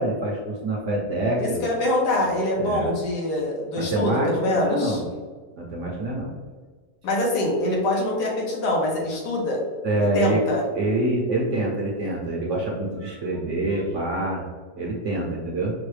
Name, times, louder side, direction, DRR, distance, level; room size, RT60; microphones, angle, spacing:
voice 1, 0.0-1.6 2.6-2.9 3.7-5.0 5.6-6.3 9.8-10.4 10.7-14.4 14.8-15.7, right 1 dB, 60° right, -3 dB, 0.9 m, -26 dB
voice 2, 1.4-5.0 7.0-9.6 10.0-10.6, left 1 dB, 85° left, -1 dB, 1.5 m, -24 dB
4.7 x 2.2 x 3.1 m, 1.5 s
omnidirectional pair, 1.7 m